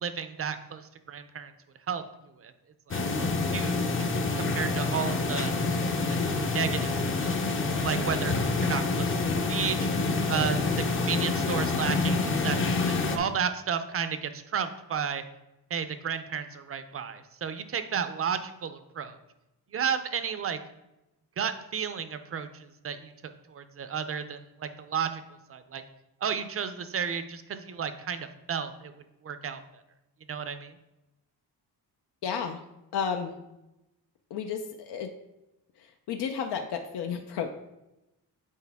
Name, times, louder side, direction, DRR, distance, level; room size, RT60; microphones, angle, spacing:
voice 1, 0.0-1.5 1.9-2.0 2.4-2.5 2.9-3.0 3.5-4.1 4.4-5.5 6.1-6.2 6.5-6.9 7.2-7.4 7.8-9.1 9.5-9.9 10.3-15.2 15.7-19.2 19.7-20.6 21.4-25.2 25.5-25.8 26.2-28.9 29.2-29.6 30.3-30.7, right 7 dB, 35° right, 10 dB, 0.5 m, -32 dB
sound 1, 2.9-13.2, left 3 dB, 30° left, 0.6 m, -27 dB
voice 2, 32.2-32.6 32.9-33.3 34.3-35.1 35.8-37.5, left 7 dB, 85° left, 5 dB, 0.7 m, -32 dB
8.2 x 4.6 x 3.4 m, 0.94 s
wide cardioid pair, 155°, 39 cm